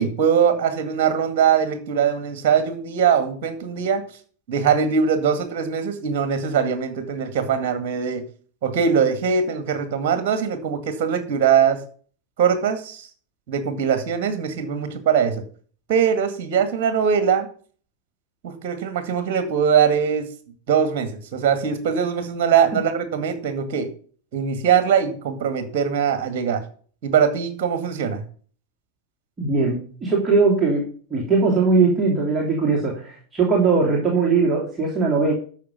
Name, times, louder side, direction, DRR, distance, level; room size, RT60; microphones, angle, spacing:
voice 1, 0.0-4.0 4.5-8.2 8.6-11.8 12.4-13.1 13.5-15.4 15.9-17.5 18.4-20.3 20.7-23.9 24.3-26.6 27.0-28.2, right 7 dB, 45° right, 9 dB, 2.0 m, -21 dB
voice 2, 29.4-35.3, right 4 dB, 15° right, -3 dB, 3.0 m, -20 dB
12.5 x 6.4 x 5.5 m, 0.43 s
figure-of-eight pair, 90°, 0 cm